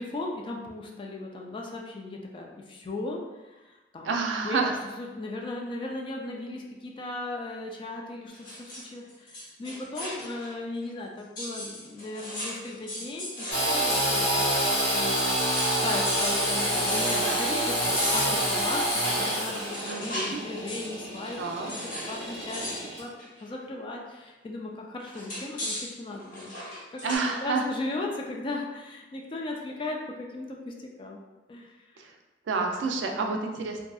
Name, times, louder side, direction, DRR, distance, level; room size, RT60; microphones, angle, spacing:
voice 1, 0.0-4.1 4.4-4.7 5.0-21.4 21.7-21.8 22.1-22.6 23.0-23.1 23.4-27.1 27.4-31.2 31.5-31.7, left 2 dB, 30° left, 0 dB, 0.3 m, -37 dB
voice 2, 4.0-4.7 19.8-20.4 21.4-21.7 27.0-27.6 32.0-32.1 32.5-33.8, right 4 dB, 85° right, 3 dB, 0.4 m, -29 dB
sound 1, 8.3-10.5 10.8-10.9 11.4-14.9 15.2-15.3 15.5-15.8 16.0-17.5 17.9-20.4 20.7-21.0 21.7-22.2 22.5-22.9 23.2-23.5 25.0-27.2, left 1 dB, 50° left, 0.8 m, -37 dB
Engine / Sawing, 13.5-23.0, equal, 75° left, 1.2 m, -27 dB
2.6 x 2.4 x 2.3 m, 1.2 s
head